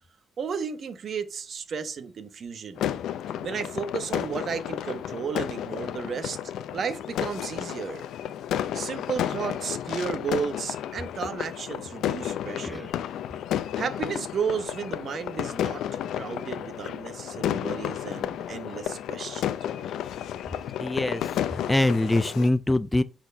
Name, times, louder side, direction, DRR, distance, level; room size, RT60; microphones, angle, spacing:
voice 1, 0.4-2.9 3.4-6.4 6.7-8.1 8.7-12.9 13.7-15.8 16.1-19.9, right 6 dB, 55° right, 1.0 m, -33 dB
sound 1, 2.8-22.5, left 10 dB, 90° left, 0.6 m, -32 dB
voice 2, 20.8-23.0, left 1 dB, 10° left, 0.4 m, -24 dB
8.0 x 4.5 x 5.2 m
cardioid pair, 110°, 0 cm